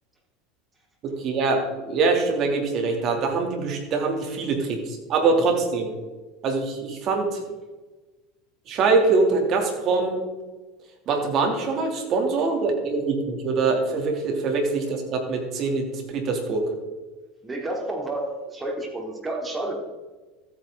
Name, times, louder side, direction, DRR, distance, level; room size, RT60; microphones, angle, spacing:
voice 1, 1.0-5.9 6.4-7.4 8.7-10.2 11.1-16.6, right 4 dB, 45° right, 3 dB, 2.8 m, -24 dB
voice 2, 17.4-19.7, right 2 dB, 15° right, 1 dB, 3.1 m, -30 dB
14.0 x 9.2 x 3.9 m, 1.2 s
supercardioid pair, 105°, 0 cm